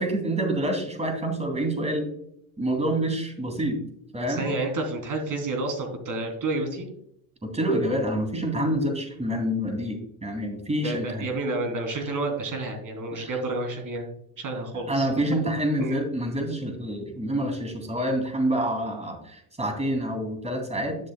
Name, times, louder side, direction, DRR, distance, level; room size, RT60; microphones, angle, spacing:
voice 1, 0.0-2.1 2.6-3.8 4.1-4.6 7.4-11.3 13.1-13.3 14.9-21.0, right 1 dB, 15° right, 4 dB, 2.8 m, -27 dB
voice 2, 4.3-6.9 10.8-14.1 14.4-15.1 15.8-16.0, right 2 dB, 45° right, 4 dB, 3.3 m, -30 dB
10.0 x 7.5 x 2.3 m, 0.70 s
supercardioid pair, 85°, 45 cm